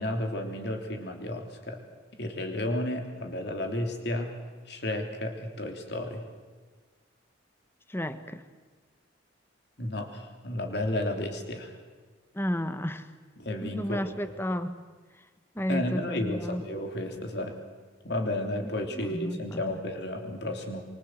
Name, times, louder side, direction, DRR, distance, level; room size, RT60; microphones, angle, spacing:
voice 1, 0.0-1.8 2.1-4.3 4.7-6.2 9.8-11.7 13.4-14.3 15.7-17.6 18.0-20.8, left 1 dB, 55° left, 4 dB, 3.3 m, -32 dB
voice 2, 7.9-8.4 12.3-13.1 13.6-14.8 15.5-16.6 18.6-19.8, equal, 10° left, 10 dB, 1.2 m, -32 dB
25.5 x 24.0 x 7.9 m, 1.4 s
head